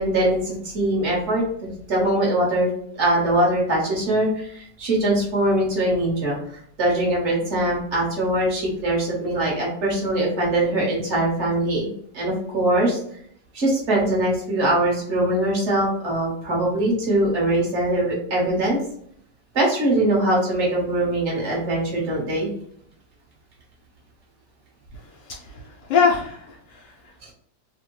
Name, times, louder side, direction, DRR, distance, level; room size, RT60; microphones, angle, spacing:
voice 1, 0.0-2.7 2.9-6.4 6.8-13.0 13.5-18.8 19.5-22.5 27.2-27.3, right 1 dB, 45° right, -3 dB, 1.3 m, -22 dB
voice 2, 24.9-27.3, left 6 dB, 80° left, -3 dB, 1.2 m, -25 dB
3.4 x 2.1 x 3.0 m, 0.65 s
omnidirectional pair, 1.9 m